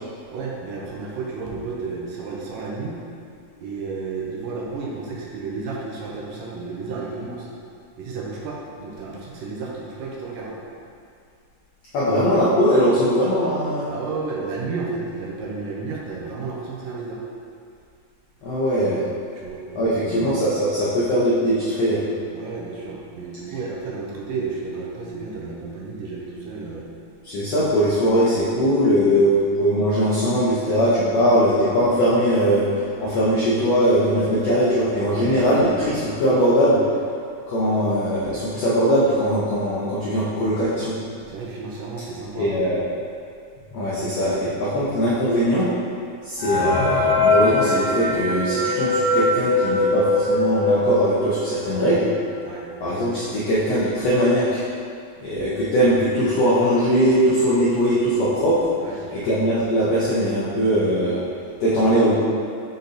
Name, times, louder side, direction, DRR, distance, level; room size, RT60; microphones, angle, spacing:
voice 1, 0.3-3.0 3.6-7.5 8.0-10.6 13.9-17.2 19.3-20.3 22.3-26.9 29.0-29.2 35.1-35.3 41.3-42.5 52.4-52.7 58.8-59.3, right 4 dB, 75° right, -3 dB, 2.3 m, -32 dB
voice 2, 11.9-13.9 18.4-19.0 19.7-22.0 27.2-36.8 37.5-40.9 42.4-42.8 43.7-45.7 46.2-52.1 52.8-54.6 55.2-58.7 59.2-61.2 61.6-62.2, equal, 75° left, -9 dB, 1.5 m, -20 dB
sound 1, 46.4-51.8 52.3-52.4 52.6-52.7 53.4-53.5 53.9-54.2, left 2 dB, 60° left, 1.2 m, -21 dB
6.7 x 4.1 x 4.0 m, 2.3 s
omnidirectional pair, 4.2 m